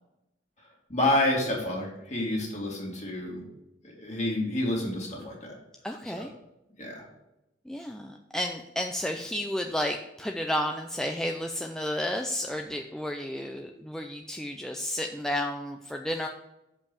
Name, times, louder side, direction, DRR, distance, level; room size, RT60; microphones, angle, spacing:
voice 1, 0.9-3.4 3.8-5.6 6.0-6.3 6.8-7.1, left 1 dB, 40° left, -2 dB, 2.4 m, -29 dB
voice 2, 5.8-6.3 7.7-16.3, left 1 dB, 5° left, 3 dB, 0.4 m, -32 dB
6.8 x 5.3 x 6.9 m, 0.91 s
head